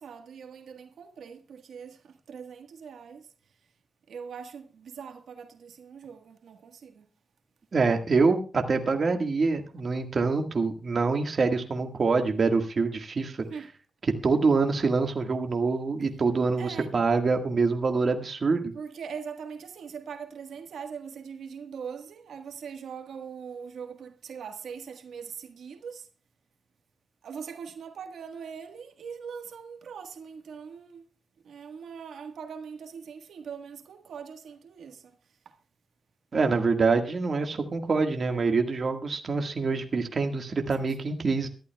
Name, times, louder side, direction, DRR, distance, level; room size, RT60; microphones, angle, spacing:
voice 1, 0.0-3.3 4.1-7.1 13.5-13.7 16.6-16.9 18.7-26.1 27.2-31.1 31.4-35.1, right 6 dB, 90° right, 1.4 m, -41 dB
voice 2, 7.7-13.4 14.2-18.7 36.3-41.5, right 4 dB, 50° right, 1.6 m, -25 dB
23.0 x 12.0 x 2.3 m
wide cardioid pair, 110°, 0 cm